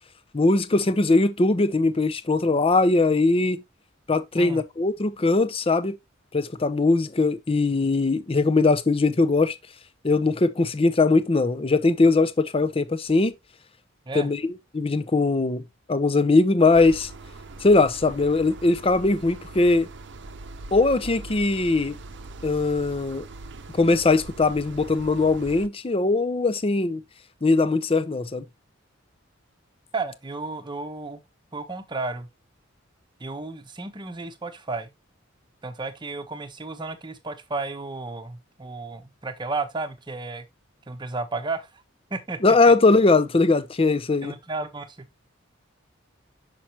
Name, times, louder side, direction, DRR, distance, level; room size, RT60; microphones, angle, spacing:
voice 1, 0.3-3.6 4.1-6.0 6.3-9.5 10.0-13.3 14.1-15.6 15.9-17.1 17.6-19.9 20.7-22.0 22.4-23.3 23.7-27.0 27.4-28.4 42.4-44.3, left 3 dB, 30° left, 0.6 m, -20 dB
sound 1, 16.7-25.7, right 2 dB, 65° right, 0.7 m, -41 dB
voice 2, 29.9-31.2 31.5-32.3 33.2-34.9 35.6-40.5 40.9-41.7 42.1-42.4 44.2-45.1, right 3 dB, 25° right, 0.9 m, -33 dB
6.0 x 5.9 x 3.0 m
head